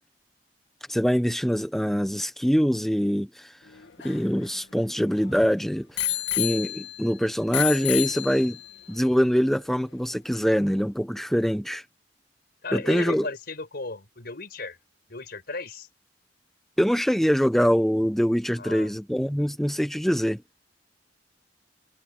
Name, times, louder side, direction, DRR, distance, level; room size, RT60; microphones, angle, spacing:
voice 1, 0.9-3.5 4.0-6.0 6.4-8.6 8.9-11.8 12.7-13.3 16.8-20.4, equal, ahead, 0.8 m, -24 dB
Bicycle bell, 3.7-5.3 6.0-7.1 7.5-8.8 9.5-9.6, left 13 dB, 90° left, 2.2 m, -30 dB
voice 2, 12.6-14.8 15.1-15.9 18.6-18.9, left 3 dB, 60° left, 5.2 m, -35 dB
head